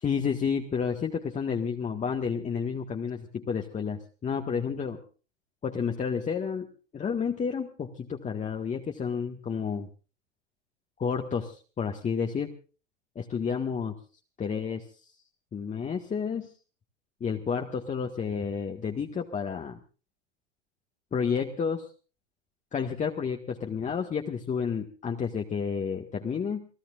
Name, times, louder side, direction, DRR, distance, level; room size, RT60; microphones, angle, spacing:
voice 1, 0.0-5.0 5.6-6.7 6.9-9.9 11.0-12.5 13.2-13.9 14.4-14.8 15.5-16.5 17.2-19.8 21.1-21.9 22.7-26.7, left 6 dB, 20° left, 2 dB, 1.7 m, -30 dB
29.5 x 17.5 x 2.5 m, 0.37 s
hypercardioid pair, 100°, 35 cm